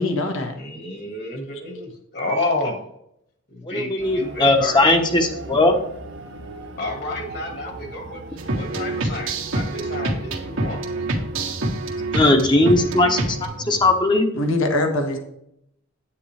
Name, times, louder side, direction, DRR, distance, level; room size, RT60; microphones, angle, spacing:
voice 1, 0.0-0.5 14.3-15.2, left 2 dB, 80° left, 4 dB, 1.6 m, -22 dB
voice 2, 0.6-2.8 3.5-4.8 6.8-8.2 8.5-10.8, left 2 dB, 55° left, 2 dB, 1.9 m, -30 dB
voice 3, 3.7-5.8 12.1-14.3, left 2 dB, 20° left, 4 dB, 0.9 m, -18 dB
sound 1, 4.0-14.0, right 2 dB, 60° right, 0.9 m, -38 dB
sound 2, 8.4-13.5, right 2 dB, 85° right, 1.8 m, -26 dB
9.6 x 9.1 x 3.3 m, 0.76 s
head